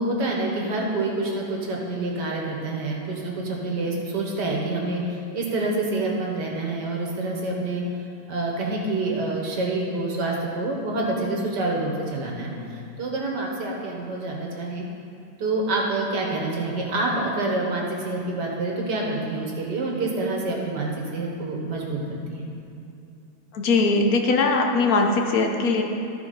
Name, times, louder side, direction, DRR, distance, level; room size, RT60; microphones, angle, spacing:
voice 1, 0.0-7.8 8.3-12.5 13.0-14.8 15.4-22.5, right 2 dB, 80° right, -1 dB, 1.9 m, -27 dB
voice 2, 23.5-25.8, left 3 dB, 65° left, 3 dB, 1.2 m, -20 dB
13.0 x 4.7 x 5.1 m, 2.8 s
omnidirectional pair, 1.8 m